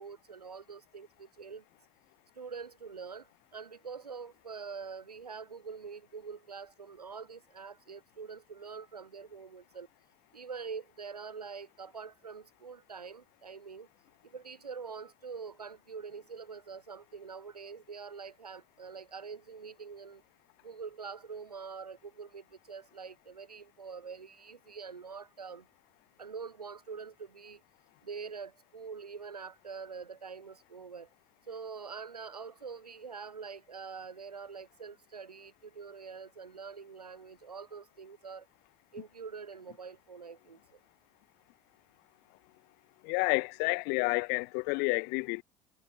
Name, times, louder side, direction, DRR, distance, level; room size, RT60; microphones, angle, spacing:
voice 1, 0.0-1.6 2.3-9.9 10.3-13.9 14.2-20.2 20.6-25.7 26.2-27.6 28.0-31.1 31.5-38.5 38.9-40.8, right 5 dB, 90° right, 6.4 m, -45 dB
voice 2, 43.0-45.4, left 32 dB, 60° left, 0.7 m, -30 dB
hypercardioid pair, 70°, 19 cm